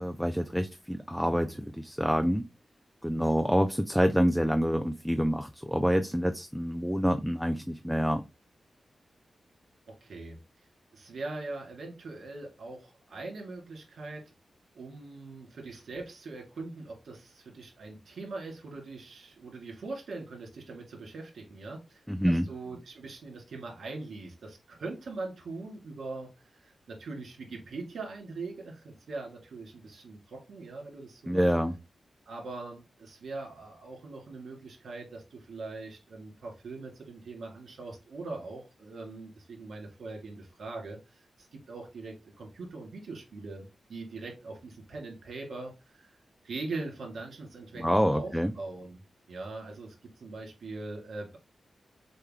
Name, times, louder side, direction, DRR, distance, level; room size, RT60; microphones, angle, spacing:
voice 1, 0.0-2.4 3.0-8.2 22.1-22.5 31.3-31.8 47.8-48.5, equal, ahead, 7 dB, 0.4 m, -27 dB
voice 2, 9.9-10.4 10.9-14.2 14.7-31.4 32.3-46.1 46.4-49.0 49.3-51.4, right 3 dB, 75° right, 0 dB, 2.2 m, -42 dB
6.5 x 2.3 x 3.6 m, 0.26 s
wide cardioid pair, 105°, 0 cm